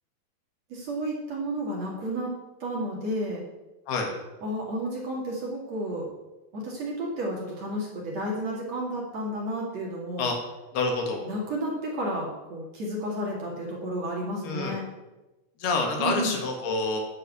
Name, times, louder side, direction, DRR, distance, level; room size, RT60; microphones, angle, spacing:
voice 1, 0.7-2.3 2.6-3.5 4.4-6.1 6.5-10.3 11.2-14.8 16.0-16.4, right 1 dB, 45° right, -2 dB, 2.9 m, -32 dB
voice 2, 10.7-11.2 14.4-14.8 15.6-17.0, left 3 dB, 70° left, 2 dB, 3.7 m, -27 dB
9.9 x 7.4 x 8.3 m, 1.0 s
omnidirectional pair, 5.0 m